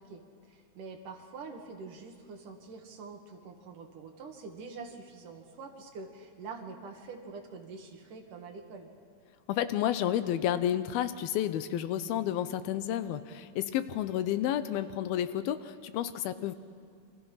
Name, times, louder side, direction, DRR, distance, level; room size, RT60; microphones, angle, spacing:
voice 1, 0.0-8.9, right 4 dB, 65° right, 3 dB, 3.4 m, -45 dB
voice 2, 9.5-16.6, left 11 dB, 90° left, 12 dB, 2.7 m, -31 dB
28.5 x 25.5 x 5.8 m, 2.4 s
omnidirectional pair, 4.2 m